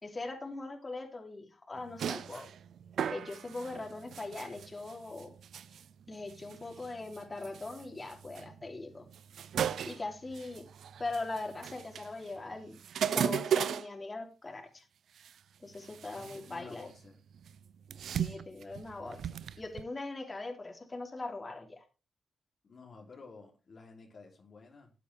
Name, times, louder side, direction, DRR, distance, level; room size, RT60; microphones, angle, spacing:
voice 1, 0.0-2.5 3.1-5.3 6.1-9.1 9.8-10.7 11.0-12.8 13.1-14.9 15.6-16.9 18.2-21.8, left 2 dB, 35° left, 2 dB, 3.2 m, -41 dB
sound 1, 1.8-13.9 15.2-15.3 15.7-17.0 17.3-19.8, right 8 dB, 75° right, 0.5 m, -37 dB
voice 2, 16.1-17.2 22.6-24.9, left 4 dB, 60° left, 0 dB, 3.1 m, -52 dB
13.0 x 8.4 x 3.4 m, 0.31 s
supercardioid pair, 45°, 0 cm